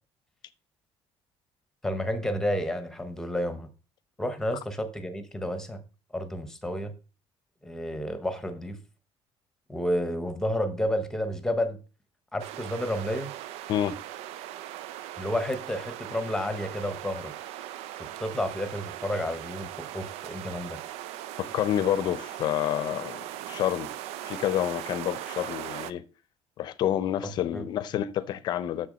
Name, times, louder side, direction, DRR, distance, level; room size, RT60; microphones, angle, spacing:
voice 1, 1.8-3.7 4.2-5.8 6.1-6.9 7.6-8.8 9.7-11.8 12.3-13.3 15.2-17.3 18.2-20.8 27.5-27.6, equal, 5° left, 0.9 m, -30 dB
sound 1, 12.4-25.9, right 13 dB, 80° right, 0.5 m, -39 dB
voice 2, 21.4-23.9 24.2-26.0 26.6-28.9, left 11 dB, 45° left, 0.6 m, -28 dB
7.0 x 7.0 x 5.0 m
cardioid pair, 180°, 11 cm